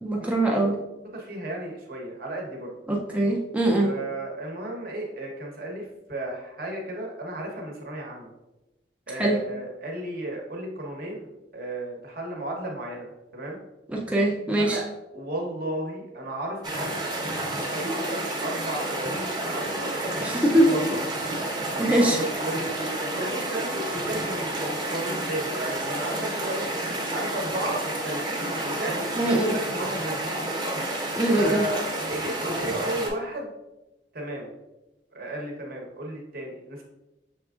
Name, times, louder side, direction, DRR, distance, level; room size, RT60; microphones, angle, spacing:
voice 1, 0.0-0.8 2.9-3.9 9.2-9.4 13.9-14.8 20.2-20.7 21.8-22.2 29.2-29.5 31.1-31.6, right 1 dB, 5° right, -2 dB, 0.4 m, -22 dB
voice 2, 1.1-2.7 3.8-8.3 9.1-13.6 14.6-14.9 15.1-21.1 21.7-26.6 27.1-29.1 29.5-30.3 31.3-33.5 34.1-34.5 35.1-36.8, right 1 dB, 55° right, 0 dB, 1.0 m, -34 dB
sound 1, 16.6-33.1, right 1 dB, 25° right, 0.9 m, -30 dB
6.0 x 3.5 x 2.4 m, 0.98 s
head